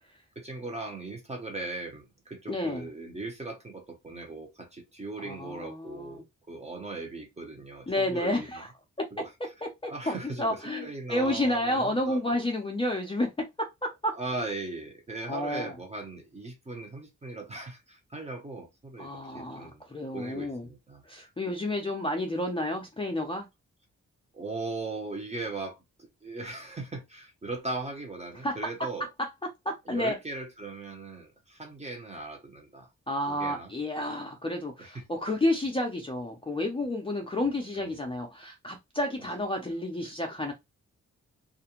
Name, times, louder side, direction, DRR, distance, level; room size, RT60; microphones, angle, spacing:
voice 1, 0.4-8.6 9.1-9.3 9.9-12.4 14.1-19.8 20.1-21.0 24.3-29.1 29.9-32.9 33.3-33.7 34.8-35.0 37.7-37.9, right 2 dB, 20° right, 0.7 m, -39 dB
voice 2, 2.5-2.9 5.2-6.2 7.9-8.7 9.6-14.2 15.3-15.7 19.0-20.6 21.1-23.5 28.4-28.9 29.2-29.3 29.7-30.2 33.1-40.5, left 1 dB, 20° left, 0.4 m, -31 dB
2.4 x 2.1 x 2.9 m
wide cardioid pair, 160°, 30 cm